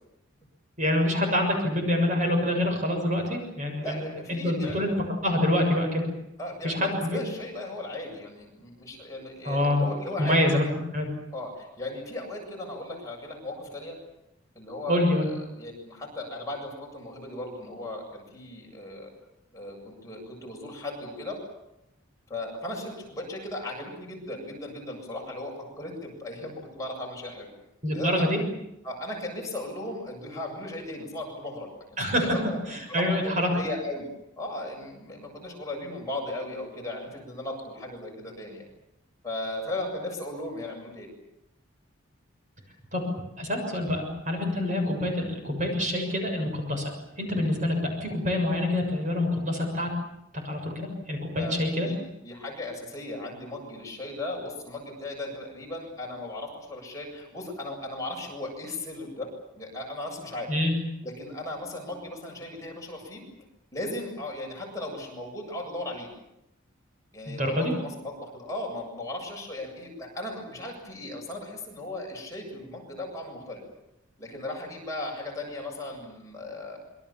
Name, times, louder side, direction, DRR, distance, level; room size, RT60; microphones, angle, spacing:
voice 1, 0.8-4.0 4.3-4.9 5.2-6.1 6.6-7.2 9.4-9.8 10.2-10.7 10.9-11.1 14.9-15.3 27.8-28.4 32.0-32.4 32.7-33.5 42.9-43.0 43.4-46.8 47.2-49.9 50.4-51.9 60.5-60.7 67.3-67.7, left 1 dB, 40° right, 3 dB, 6.9 m, -26 dB
voice 2, 3.8-4.8 6.4-10.7 11.3-14.0 14.5-19.1 19.5-21.4 22.3-27.5 27.9-28.2 28.8-31.7 32.1-32.6 32.9-34.1 34.4-38.6 39.2-41.1 51.4-52.0 52.2-59.3 59.5-60.5 61.0-63.2 63.7-66.1 67.1-73.6 74.2-76.8, left 1 dB, 15° left, -1 dB, 7.7 m, -37 dB
26.5 x 24.0 x 7.4 m, 0.84 s
head